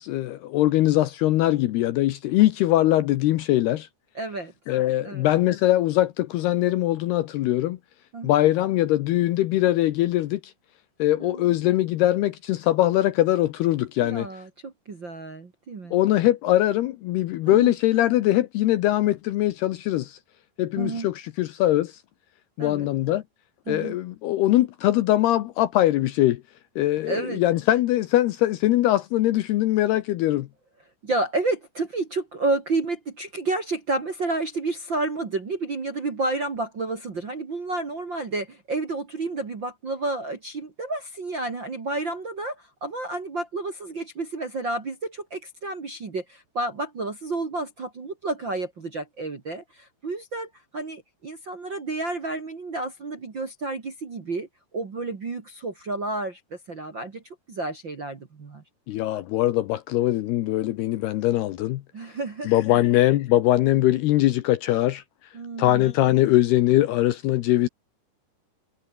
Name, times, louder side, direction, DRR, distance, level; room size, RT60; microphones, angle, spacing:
voice 1, 0.0-3.9 4.7-7.8 8.2-10.5 11.0-14.3 15.9-20.2 20.6-22.0 22.6-23.2 23.7-26.4 26.8-30.5 58.9-61.8 62.4-65.0 65.6-67.7, left 15 dB, 75° left, 2.6 m, -22 dB
voice 2, 4.1-4.5 5.0-5.3 8.1-8.3 11.2-11.5 14.0-16.0 17.5-17.7 20.8-21.1 22.6-22.9 23.7-24.0 27.1-27.4 31.0-54.5 54.7-57.2 57.5-58.6 61.9-62.5 65.3-65.9, right 2 dB, 40° right, 1.8 m, -30 dB
omnidirectional pair, 5.4 m